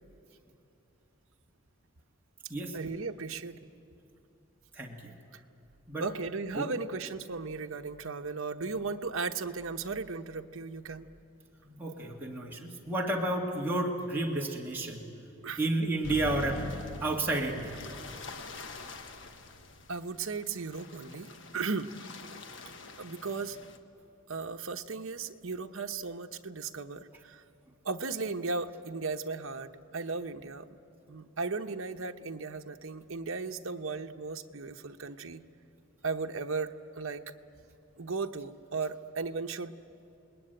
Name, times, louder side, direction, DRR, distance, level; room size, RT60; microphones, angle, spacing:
voice 1, 2.7-3.6 5.3-5.4 6.0-11.1 15.4-15.6 19.9-21.9 23.0-23.6 24.3-27.4 27.8-30.7 31.1-35.4 36.0-37.2 38.0-39.7, right 4 dB, 70° right, 5 dB, 0.9 m, -36 dB
voice 2, 4.7-5.1 5.9-6.1 6.6-6.7 11.6-15.1 15.6-16.7 17.0-17.8 22.6-22.8, right 2 dB, 10° right, -3 dB, 2.0 m, -31 dB
sound 1, 16.0-23.8, left 2 dB, 55° left, 1.3 m, -44 dB
30.0 x 20.5 x 9.1 m, 2.7 s
head